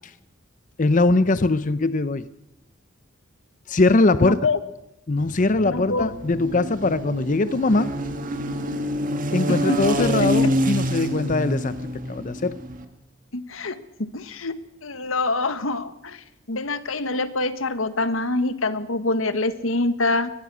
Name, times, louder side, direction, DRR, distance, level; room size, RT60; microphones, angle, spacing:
voice 1, 0.8-2.3 3.7-4.4 5.1-7.9 9.3-11.8 12.1-12.6, left 2 dB, 40° left, 14 dB, 0.7 m, -21 dB
voice 2, 4.2-4.6 5.6-6.1 9.5-10.5 13.3-13.8 14.1-14.5 14.8-20.3, left 2 dB, 90° left, 12 dB, 1.5 m, -25 dB
sound 1, 5.2-12.8, equal, 40° right, 1.9 m, -27 dB
22.5 x 20.0 x 6.2 m, 0.89 s
head